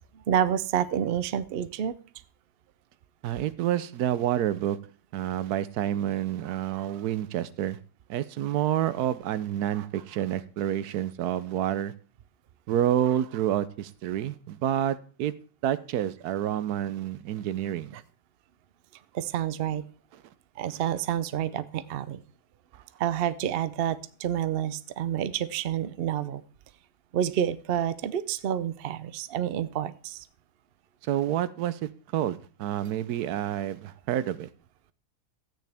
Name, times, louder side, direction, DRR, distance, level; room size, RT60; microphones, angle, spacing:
voice 1, 0.3-1.9 17.9-18.0 19.1-19.9 20.6-22.2 23.0-26.4 27.1-30.3, right 10 dB, 60° right, 14 dB, 0.6 m, -29 dB
voice 2, 3.2-4.8 5.1-7.8 8.1-11.9 12.7-15.3 15.6-18.0 31.0-34.5, right 11 dB, 80° right, 15 dB, 1.2 m, -28 dB
14.0 x 9.1 x 3.4 m, 0.40 s
omnidirectional pair, 1.7 m